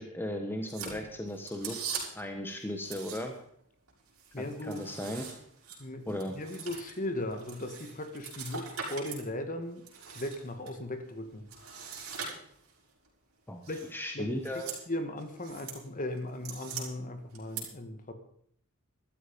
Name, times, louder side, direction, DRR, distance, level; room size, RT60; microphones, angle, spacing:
voice 1, 0.0-1.9 2.1-3.3 4.4-5.3 6.1-6.3 13.5-13.6 13.9-14.7, left 1 dB, 10° left, 4 dB, 1.3 m, -36 dB
sound 1, 0.7-2.3 2.8-3.5 3.9-9.3 9.6-10.7 11.5-12.8 13.6-13.9 14.3-14.8 15.2-15.8 16.2-16.8 17.3-17.6, right 6 dB, 70° right, 5.9 m, -42 dB
voice 2, 4.3-4.9 5.8-9.8 10.1-11.5 13.7-13.8 14.1-14.3 14.5-18.1, left 1 dB, 35° left, 7 dB, 1.8 m, -37 dB
14.5 x 13.0 x 5.3 m, 0.63 s
head